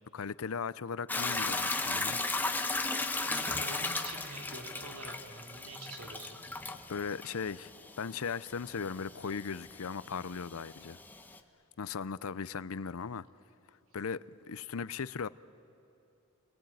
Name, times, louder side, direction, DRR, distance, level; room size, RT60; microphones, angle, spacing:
voice 1, 0.1-2.2 6.9-7.7 8.0-11.0 11.8-13.2 13.9-15.3, left 5 dB, 70° left, 0.6 m, -38 dB
Hiss / Toilet flush / Trickle dribble, 1.1-11.4, left 3 dB, 10° left, 1.0 m, -36 dB
voice 2, 3.2-6.4, right 2 dB, 80° right, 3.4 m, -46 dB
29.0 x 21.0 x 9.1 m
head